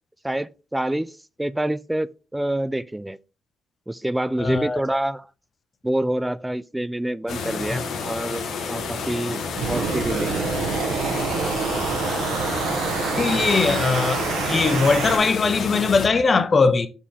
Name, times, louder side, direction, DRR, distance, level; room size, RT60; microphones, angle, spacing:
voice 1, 0.2-3.2 3.9-5.3 5.8-10.6, right 1 dB, 10° right, 0.4 m, -27 dB
voice 2, 4.4-4.8 7.7-7.8 13.2-16.9, left 4 dB, 35° left, 0.7 m, -20 dB
sound 1, 7.3-16.1, left 5 dB, 75° left, 1.4 m, -30 dB
sound 2, 9.6-15.2, right 5 dB, 85° right, 1.1 m, -26 dB
7.2 x 4.3 x 3.5 m
cardioid pair, 90°, 0 cm